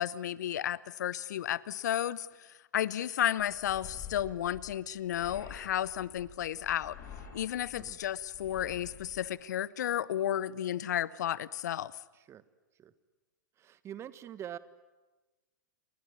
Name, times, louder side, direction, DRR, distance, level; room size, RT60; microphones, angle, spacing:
voice 1, 0.0-7.0 7.3-11.9, left 11 dB, 65° left, 20 dB, 0.9 m, -33 dB
sound 1, 3.4-9.3, left 7 dB, 35° left, 7.9 m, -49 dB
voice 2, 13.6-14.6, right 10 dB, 25° right, 15 dB, 1.4 m, -44 dB
29.0 x 22.5 x 9.0 m, 1.1 s
figure-of-eight pair, 105°, 10 cm